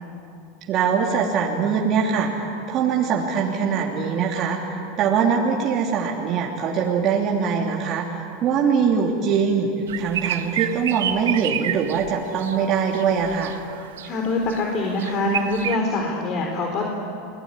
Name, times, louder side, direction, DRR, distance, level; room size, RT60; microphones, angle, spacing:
voice 1, 0.7-9.7 10.0-13.5, right 6 dB, 45° right, -2 dB, 3.1 m, -22 dB
sound 1, 9.9-12.6 12.9-14.2 14.4-15.8, right 10 dB, 85° right, 1.4 m, -29 dB
voice 2, 14.0-16.9, left 2 dB, 45° left, 1 dB, 4.0 m, -24 dB
29.5 x 20.5 x 9.9 m, 2.7 s
hypercardioid pair, 105°, 0 cm